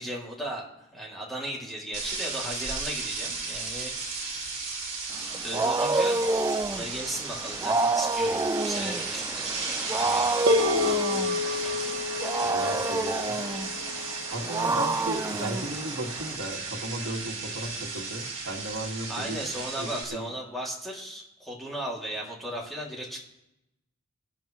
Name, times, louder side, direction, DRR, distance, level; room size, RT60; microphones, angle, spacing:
voice 1, 0.0-3.9 4.2-4.5 5.4-9.5 9.9-11.9 19.1-23.2, right 1 dB, ahead, -4 dB, 2.4 m, -37 dB
sound 1, 1.9-20.0, right 4 dB, 35° right, 5.0 m, -35 dB
Wild animals, 5.1-16.4, right 2 dB, 15° right, 0.4 m, -29 dB
sound 2, 10.5-15.0, left 3 dB, 90° right, 0.7 m, -30 dB
voice 2, 12.4-13.4 14.3-19.4 19.7-20.3, right 1 dB, 70° right, 0 dB, 1.8 m, -35 dB
24.5 x 11.0 x 3.0 m, 0.88 s
head